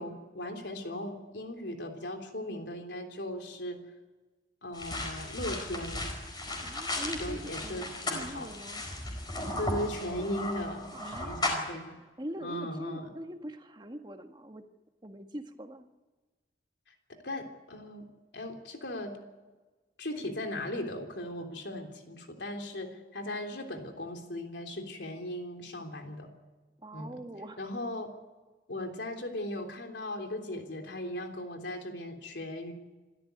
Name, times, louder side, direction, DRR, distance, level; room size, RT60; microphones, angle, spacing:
voice 1, 0.0-3.8 4.6-6.1 7.2-8.5 9.6-10.9 11.2-12.0 12.4-13.1 17.2-18.1 18.3-19.2 20.0-26.3 26.9-27.2 27.6-28.1 28.7-32.7, left 1 dB, 85° left, 3 dB, 3.4 m, -38 dB
sound 1, 4.7-11.7, left 1 dB, 25° left, 4.6 m, -36 dB
voice 2, 6.6-7.9 8.1-8.8 10.9-11.4 12.2-14.6 15.0-15.9 26.8-27.6, right 1 dB, 25° right, 5 dB, 1.6 m, -42 dB
26.0 x 13.5 x 9.3 m, 1.3 s
head